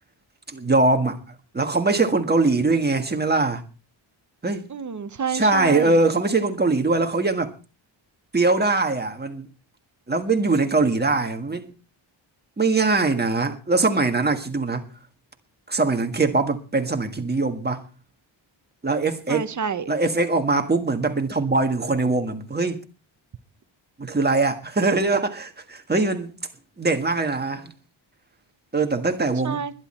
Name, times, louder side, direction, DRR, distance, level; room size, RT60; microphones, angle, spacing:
voice 1, 0.5-1.2 1.5-3.6 4.4-4.7 5.3-7.5 8.3-9.5 10.1-11.7 12.6-14.9 15.7-17.8 18.8-19.5 19.9-22.8 24.0-26.3 26.8-27.7 28.7-29.6, right 3 dB, 20° right, 1.6 m, -22 dB
voice 2, 4.7-5.9 19.3-19.9 29.4-29.7, right 6 dB, 35° right, 0.9 m, -29 dB
21.0 x 11.0 x 4.4 m
wide cardioid pair, 180°, 48 cm